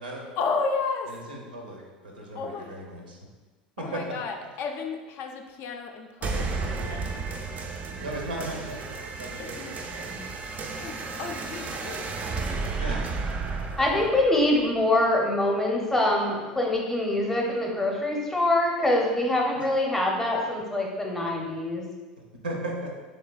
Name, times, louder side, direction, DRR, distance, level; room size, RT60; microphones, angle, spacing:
voice 1, 0.4-1.1 2.4-2.7 3.8-7.2 9.6-9.7 10.7-12.2 13.8-13.9, left 4 dB, 50° left, 0.3 m, -33 dB
voice 2, 1.1-3.2 3.8-4.0 8.0-10.1 12.7-13.1 13.5-13.6 13.9-14.0 19.5-19.6 22.4-22.9, right 1 dB, 80° right, 0.6 m, -36 dB
sound 1, 6.2-15.2, right 4 dB, 30° right, 0.3 m, -33 dB
voice 3, 13.8-21.8, left 1 dB, 5° left, 0.7 m, -24 dB
3.2 x 3.1 x 2.3 m
figure-of-eight pair, 75°, 5 cm